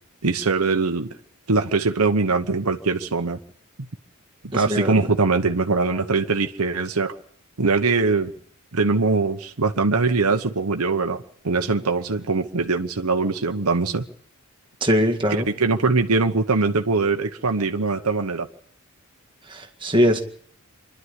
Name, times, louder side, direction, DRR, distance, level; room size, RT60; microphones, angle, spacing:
voice 1, 0.2-1.1 1.5-3.4 4.5-7.2 7.6-8.3 8.7-14.0 15.6-18.5, right 4 dB, 90° right, 1.1 m, -22 dB
voice 2, 4.5-5.0 14.8-15.5 19.5-20.2, equal, 20° right, 2.0 m, -21 dB
25.5 x 11.5 x 9.8 m
head